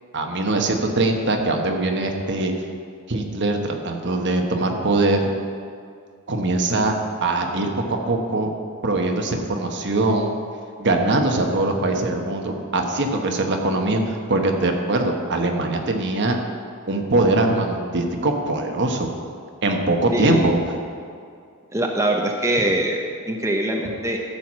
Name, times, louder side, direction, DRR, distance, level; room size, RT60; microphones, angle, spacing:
voice 1, 0.1-2.5 3.1-5.3 6.3-7.0 7.2-8.5 8.8-10.3 10.8-16.4 16.9-19.1 19.6-20.6, right 2 dB, 55° right, 3 dB, 1.1 m, -22 dB
voice 2, 20.1-20.5 21.7-24.2, right 1 dB, 15° right, 1 dB, 0.7 m, -23 dB
13.0 x 4.7 x 7.3 m, 2.3 s
head